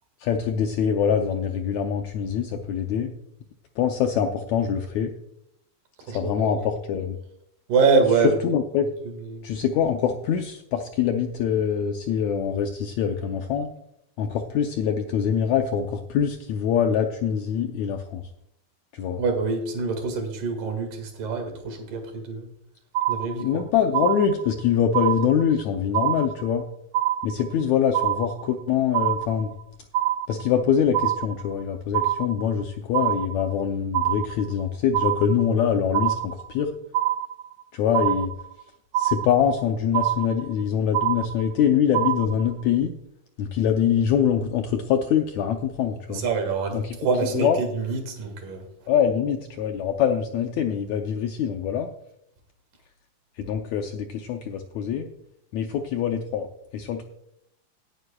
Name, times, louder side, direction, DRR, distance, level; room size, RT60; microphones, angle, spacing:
voice 1, 0.2-3.1 3.8-5.1 6.1-7.2 8.4-8.9 9.4-13.7 14.2-18.2 18.9-19.2 23.4-26.7 27.2-29.5 30.3-36.7 37.7-38.3 39.0-42.9 43.4-46.2 46.7-47.0 47.3-47.6 48.9-51.9 53.4-55.1 55.5-56.5 56.7-57.0, left 8 dB, 75° left, 5 dB, 1.7 m, -24 dB
voice 2, 6.1-6.6 7.7-8.4 9.1-9.5 19.2-22.5 23.1-23.6 46.1-48.6, right 4 dB, 70° right, 4 dB, 3.5 m, -25 dB
sound 1, 22.9-23.6 23.9-24.6 24.9-25.6 25.9-26.6 26.9-27.6 27.9-28.6 28.9-29.6 29.9-30.6 30.9-31.6 31.9-32.6 32.9-33.6 33.9-34.6 34.9-35.6 35.9-36.6 36.9-37.6 37.9-38.6 38.9-39.6 39.9-40.6 40.9-41.6 41.9-42.6, right 13 dB, 90° right, 1.6 m, -25 dB
18.5 x 9.6 x 2.3 m, 0.77 s
omnidirectional pair, 3.9 m